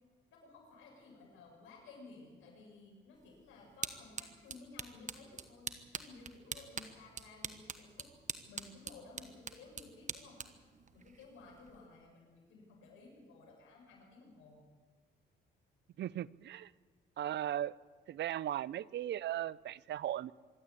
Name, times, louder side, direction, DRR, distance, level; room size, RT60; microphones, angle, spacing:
voice 1, 0.3-8.1 8.5-10.4 10.9-14.6, left 3 dB, 90° left, -1 dB, 7.4 m, -56 dB
sound 1, 3.1-11.9, right 6 dB, 40° right, 1.3 m, -46 dB
voice 2, 16.0-16.7 17.2-17.7 18.1-20.3, right 12 dB, 65° right, 21 dB, 0.5 m, -37 dB
25.0 x 12.5 x 8.5 m, 1.5 s
cardioid pair, 90°, 20 cm